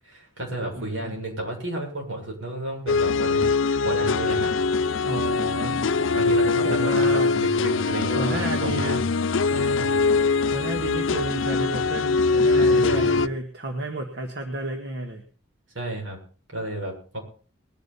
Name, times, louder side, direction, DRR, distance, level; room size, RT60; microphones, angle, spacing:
voice 1, 0.0-4.5 6.1-9.0 9.4-10.0 12.6-13.3 15.7-16.2 16.5-17.2, right 1 dB, 85° right, 1 dB, 7.2 m, -32 dB
voice 2, 0.8-1.2 5.0-6.3 6.6-7.4 8.2-9.0 10.5-15.2, right 2 dB, 65° right, 3 dB, 1.9 m, -32 dB
sound 1, 2.9-13.3, left 4 dB, 90° left, 0.6 m, -22 dB
21.5 x 10.5 x 4.3 m, 0.41 s
head